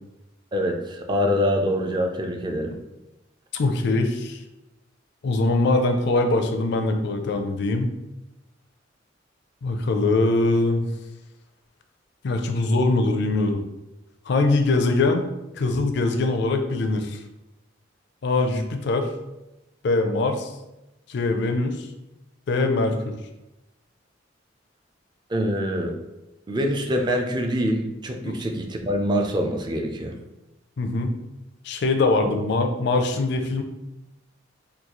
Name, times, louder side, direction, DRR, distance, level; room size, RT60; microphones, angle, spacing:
voice 1, 0.5-2.7 25.3-26.0 26.5-30.2 32.2-32.3, equal, 25° right, 2 dB, 0.4 m, -25 dB
voice 2, 3.5-4.4 5.2-7.9 9.6-10.9 12.2-13.6 14.3-15.2 15.6-17.2 18.2-19.1 19.8-20.5 21.1-21.9 22.5-23.1 28.2-28.4 30.8-31.1 31.6-33.6, left 2 dB, 65° left, 5 dB, 0.4 m, -22 dB
3.8 x 2.3 x 2.9 m, 0.95 s
head